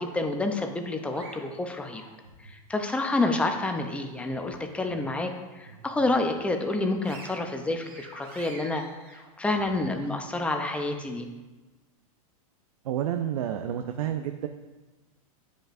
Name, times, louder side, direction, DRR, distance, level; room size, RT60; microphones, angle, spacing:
voice 1, 0.0-2.0 2.4-11.3, left 2 dB, 5° left, 4 dB, 0.5 m, -29 dB
sound 1, 0.5-2.6 3.0-4.5 4.8-5.0 5.5-6.3 6.7-10.1, right 3 dB, 45° right, 1.8 m, -49 dB
voice 2, 12.8-14.5, right 10 dB, 80° right, 7 dB, 0.5 m, -29 dB
9.5 x 5.2 x 2.6 m, 1.2 s
supercardioid pair, 135°, 18 cm